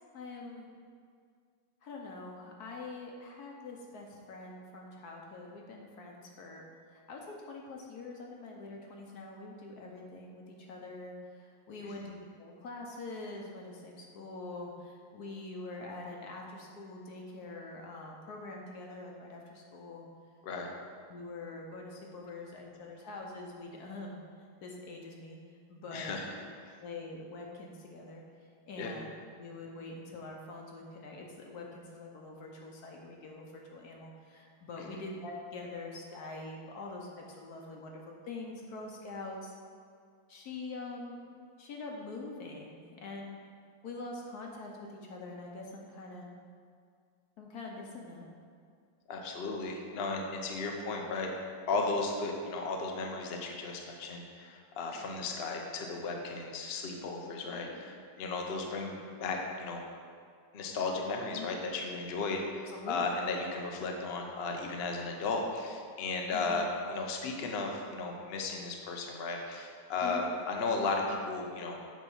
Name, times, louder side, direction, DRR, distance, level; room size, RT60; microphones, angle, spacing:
voice 1, 0.1-0.7 1.8-20.1 21.1-24.2 24.6-25.4 25.7-26.1 26.8-28.2 28.7-39.5 40.3-41.2 41.6-43.4 43.8-46.3 47.4-48.3 54.9-55.1 57.4-57.9 61.3-61.5 62.7-63.2 66.3-66.5 70.0-70.2, left 3 dB, 60° left, 0 dB, 1.1 m, -44 dB
voice 2, 25.9-26.3 28.8-28.9 49.1-51.3 51.7-59.8 60.5-71.8, left 3 dB, 90° left, 1 dB, 0.5 m, -35 dB
7.9 x 4.2 x 5.4 m, 2.2 s
omnidirectional pair, 2.3 m